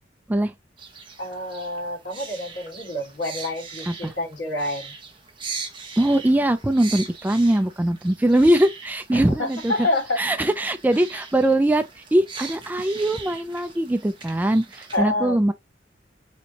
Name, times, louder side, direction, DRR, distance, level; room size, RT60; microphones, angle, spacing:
sound 1, 0.8-15.0, right 5 dB, 25° right, 0.9 m, -40 dB
voice 1, 1.2-4.9 9.1-10.2 14.9-15.4, left 2 dB, 85° left, 2.5 m, -28 dB
voice 2, 6.0-9.9 10.2-11.8 12.1-15.5, right 1 dB, 10° right, 0.3 m, -21 dB
4.3 x 2.7 x 2.9 m
head